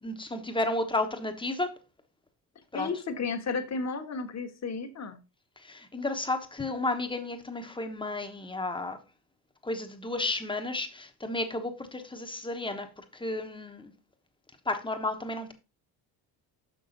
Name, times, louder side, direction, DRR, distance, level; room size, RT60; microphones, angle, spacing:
voice 1, 0.0-1.7 2.7-2.9 5.6-9.0 9.6-13.9 14.6-15.5, left 2 dB, 10° left, 1.1 m, -32 dB
voice 2, 2.7-5.2, left 4 dB, 40° left, 1.4 m, -33 dB
6.1 x 6.0 x 3.9 m
cardioid pair, 100°, 41 cm